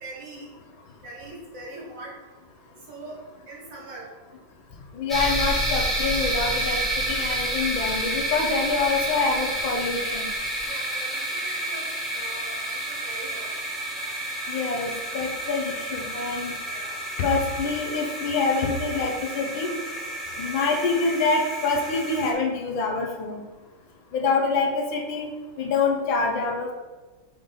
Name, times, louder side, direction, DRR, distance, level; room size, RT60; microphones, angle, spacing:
voice 1, 0.0-0.5 1.0-2.1 2.9-3.2 3.5-4.1 10.7-12.6 12.9-13.5 16.6-17.0, right 2 dB, 60° right, -4 dB, 2.2 m, -41 dB
voice 2, 4.9-10.3 14.5-16.5 17.2-19.7 20.4-23.4 24.1-25.3 25.6-26.7, left 4 dB, 70° left, 1 dB, 1.6 m, -26 dB
sound 1, 5.1-22.3, right 1 dB, ahead, 0.6 m, -30 dB
5.1 x 3.4 x 5.5 m, 1.3 s
omnidirectional pair, 2.3 m